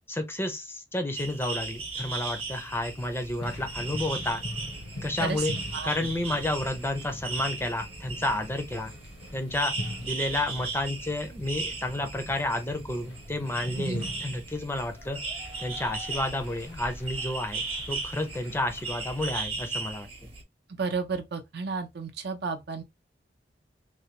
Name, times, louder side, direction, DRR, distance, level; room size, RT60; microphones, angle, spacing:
voice 1, 0.1-4.4 5.0-5.5 5.8-8.9 9.3-9.7 10.0-15.2 15.6-20.3, left 1 dB, 15° left, 0.5 m, -31 dB
sound 1, 1.1-20.4, right 3 dB, 35° right, 0.8 m, -37 dB
sound 2, 3.4-19.4, left 1 dB, 85° left, 0.9 m, -42 dB
voice 2, 5.2-6.1 13.8-14.0 20.8-22.8, right 4 dB, 65° right, 0.6 m, -33 dB
3.2 x 2.2 x 2.9 m
head